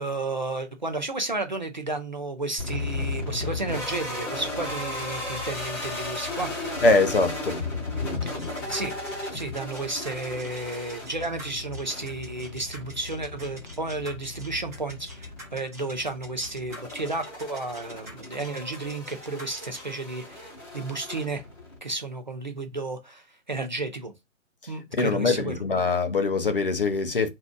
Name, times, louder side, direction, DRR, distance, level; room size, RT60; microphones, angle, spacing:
voice 1, 0.0-6.5 8.7-8.9 9.3-21.4 21.8-24.1 24.7-25.6, right 2 dB, 35° right, 0.5 m, -32 dB
sound 1, 2.6-21.8, left 2 dB, 20° left, 1.2 m, -35 dB
voice 2, 6.8-7.6 24.6-27.3, left 3 dB, 45° left, 0.5 m, -23 dB
sound 2, 8.4-19.9, right 1 dB, 10° right, 0.8 m, -45 dB
2.6 x 2.3 x 3.4 m
hypercardioid pair, 170°, 40 cm